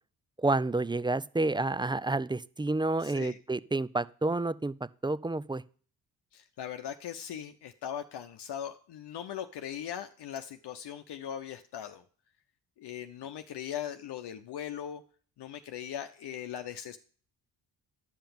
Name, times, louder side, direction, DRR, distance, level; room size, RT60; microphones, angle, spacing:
voice 1, 0.4-4.7 5.0-5.6, right 2 dB, 10° right, 18 dB, 0.4 m, -29 dB
voice 2, 3.0-3.4 6.3-12.0 12.8-15.0 15.4-17.0, left 9 dB, 65° left, 7 dB, 0.9 m, -39 dB
10.5 x 5.8 x 7.0 m, 0.43 s
supercardioid pair, 60°, 44 cm